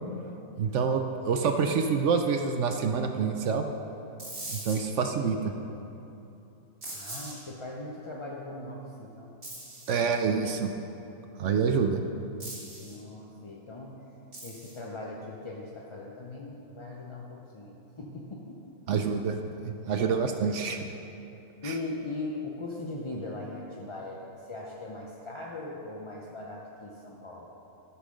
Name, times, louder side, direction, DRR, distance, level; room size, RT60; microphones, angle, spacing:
voice 1, 0.6-3.6 4.5-5.5 9.9-10.7 11.4-12.0 18.9-20.8 21.6-21.7, right 5 dB, 65° right, 6 dB, 0.8 m, -27 dB
sound 1, 4.2-4.8 6.8-7.3 9.4-9.9 12.4-13.0 14.3-14.8, right 1 dB, 45° right, 3.2 m, -40 dB
voice 2, 6.9-9.3 12.8-14.1 14.4-18.6 21.6-27.5, left 2 dB, 35° left, -3 dB, 0.5 m, -39 dB
12.0 x 5.7 x 6.4 m, 2.9 s
omnidirectional pair, 1.5 m